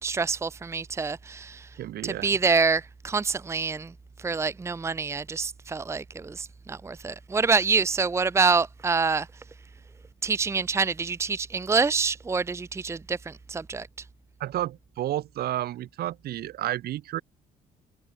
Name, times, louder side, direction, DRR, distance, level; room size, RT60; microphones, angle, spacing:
voice 1, 0.0-1.7 2.0-3.9 4.2-9.3 10.2-13.9, right 4 dB, 15° right, 0.8 m, -26 dB
voice 2, 1.8-2.3 14.4-17.2, right 13 dB, 65° right, 2.0 m, -31 dB
cardioid pair, 110°, 17 cm